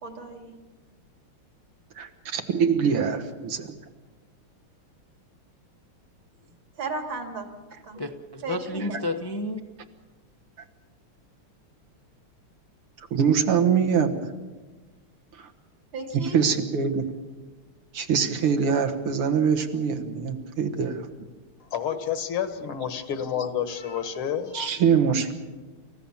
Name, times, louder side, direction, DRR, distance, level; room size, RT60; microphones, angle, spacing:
voice 1, 0.0-0.6 6.8-7.5 7.8-8.0 8.4-9.0 14.0-14.1 15.9-16.4, right 3 dB, 60° right, 5 dB, 3.0 m, -34 dB
voice 2, 2.0-3.7 13.1-14.3 15.4-15.5 16.1-17.1 17.9-21.0 24.5-25.3, right 6 dB, 85° right, 5 dB, 2.5 m, -24 dB
voice 3, 8.0-9.6, left 2 dB, 40° left, 4 dB, 0.3 m, -31 dB
voice 4, 21.7-24.7, left 8 dB, 75° left, 10 dB, 2.2 m, -29 dB
28.5 x 15.0 x 7.2 m, 1.3 s
omnidirectional pair, 2.4 m